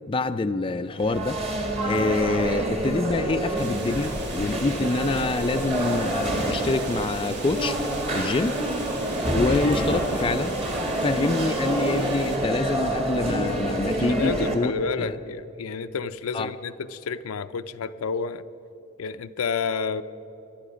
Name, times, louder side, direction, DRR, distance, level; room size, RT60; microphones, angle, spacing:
voice 1, 0.1-1.4 1.9-7.8 8.1-8.6 9.3-10.5 11.0-14.7 15.0-15.2 16.3-16.5, left 3 dB, 25° left, 9 dB, 0.4 m, -26 dB
sound 1, 0.9-14.5, right 1 dB, 30° right, 1.8 m, -27 dB
sound 2, 3.5-12.4, right 4 dB, 55° right, 2.2 m, -41 dB
voice 2, 14.1-18.4 19.0-20.0, left 5 dB, 85° left, 11 dB, 0.5 m, -30 dB
24.0 x 11.5 x 5.1 m, 3.0 s
head